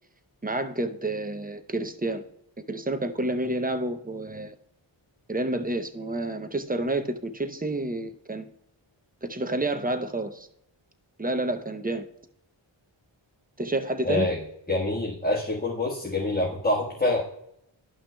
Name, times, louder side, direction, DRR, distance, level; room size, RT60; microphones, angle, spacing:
voice 1, 0.4-2.2 2.7-4.5 5.3-8.5 9.2-10.5 11.2-12.1 13.6-14.3, right 2 dB, 20° right, 8 dB, 0.6 m, -29 dB
voice 2, 14.0-14.4 14.7-17.2, left 2 dB, 20° left, -5 dB, 1.3 m, -26 dB
11.0 x 5.8 x 2.2 m, 0.76 s
wide cardioid pair, 45°, 50 cm